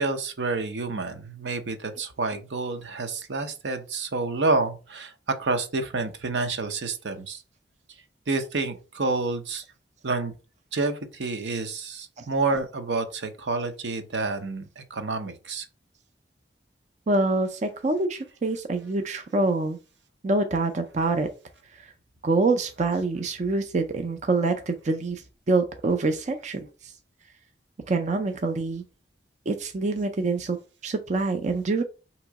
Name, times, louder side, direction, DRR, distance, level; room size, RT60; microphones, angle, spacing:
voice 1, 0.0-7.4 8.3-9.6 10.0-10.3 10.7-15.6, right 3 dB, 75° right, 0.7 m, -29 dB
voice 2, 17.1-19.8 20.2-21.3 21.7-21.9 22.2-26.9 27.9-28.8 29.5-30.6 30.8-31.8, right 3 dB, 40° right, 0.5 m, -26 dB
3.6 x 3.0 x 4.6 m
head